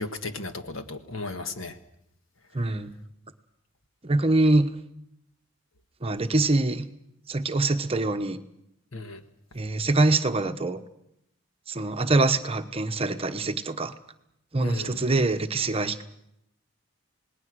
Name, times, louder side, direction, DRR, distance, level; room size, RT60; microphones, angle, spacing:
voice 1, 0.0-1.7 8.9-9.2 14.6-15.0, left 3 dB, 65° left, 7 dB, 1.5 m, -35 dB
voice 2, 2.5-3.0 4.0-4.7 6.0-6.9 7.3-8.4 9.5-10.8 11.7-13.9 14.5-16.0, right 2 dB, 25° right, 7 dB, 1.1 m, -24 dB
28.0 x 19.5 x 6.3 m, 0.77 s
head